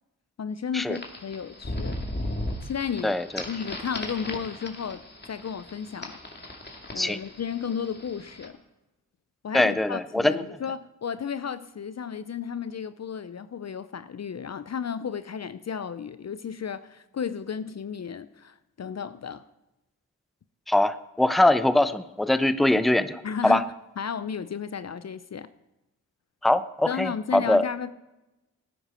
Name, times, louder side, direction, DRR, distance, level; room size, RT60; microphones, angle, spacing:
voice 1, 0.4-2.0 2.6-3.2 3.5-5.0 5.3-6.2 6.9-8.6 9.4-19.4 23.2-23.7 24.0-25.5 26.9-27.9, left 7 dB, 45° left, 14 dB, 0.6 m, -33 dB
sound 1, 0.9-8.5, left 1 dB, 25° left, 2.5 m, -37 dB
voice 2, 3.0-3.4 7.0-7.2 9.5-10.4 20.7-23.6 26.4-27.6, left 1 dB, ahead, 13 dB, 0.7 m, -22 dB
17.5 x 9.8 x 4.4 m, 0.99 s
supercardioid pair, 40°, 38 cm